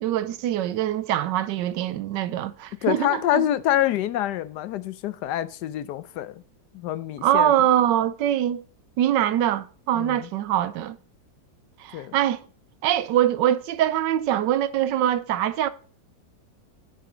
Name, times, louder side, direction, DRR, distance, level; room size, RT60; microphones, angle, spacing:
voice 1, 0.0-3.5 7.2-8.6 9.0-11.0 11.8-12.4 12.8-15.7, right 11 dB, 85° right, 1.3 m, -23 dB
voice 2, 2.8-6.4 6.7-7.5 9.9-10.3 11.9-12.2, left 12 dB, 75° left, 1.2 m, -26 dB
9.2 x 6.7 x 3.8 m
omnidirectional pair, 1.9 m